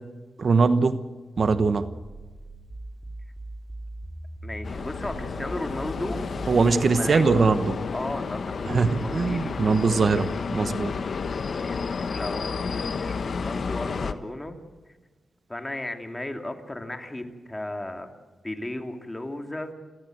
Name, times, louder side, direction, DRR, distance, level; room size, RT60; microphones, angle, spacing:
voice 1, 0.4-1.0 1.4-1.9 6.5-7.8 8.7-10.9, right 4 dB, 55° right, 11 dB, 1.1 m, -21 dB
sound 1, 1.4-6.8, right 1 dB, 20° right, 3.8 m, -40 dB
voice 2, 4.4-6.2 6.9-7.2 7.9-9.6 11.6-14.6 15.5-18.1 18.4-19.7, left 1 dB, 15° left, 5 dB, 2.7 m, -35 dB
sound 2, 4.6-14.1, left 5 dB, 60° left, 1.2 m, -31 dB
30.0 x 14.0 x 7.9 m, 1.3 s
cardioid pair, 80°, 0 cm